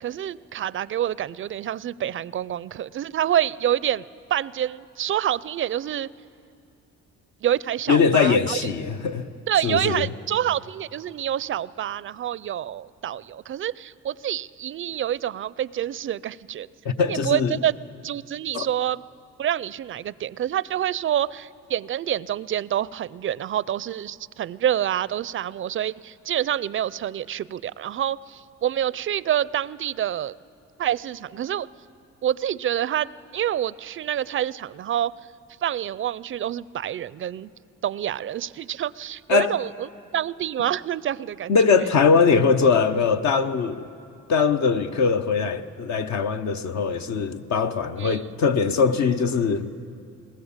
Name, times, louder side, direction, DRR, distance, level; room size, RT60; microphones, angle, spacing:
voice 1, 0.0-6.1 7.4-8.6 9.5-16.7 17.1-17.7 18.0-19.0 19.4-30.3 30.8-31.7 32.2-35.1 35.6-37.5 37.8-41.6 48.0-48.2, right 11 dB, 45° right, 0.4 m, -27 dB
voice 2, 7.9-9.3 9.6-10.0 16.8-17.6 18.5-18.7 39.3-39.5 41.5-43.8 44.3-49.7, left 5 dB, 65° left, 0.9 m, -21 dB
21.0 x 19.5 x 7.3 m
cardioid pair, 90°, 30 cm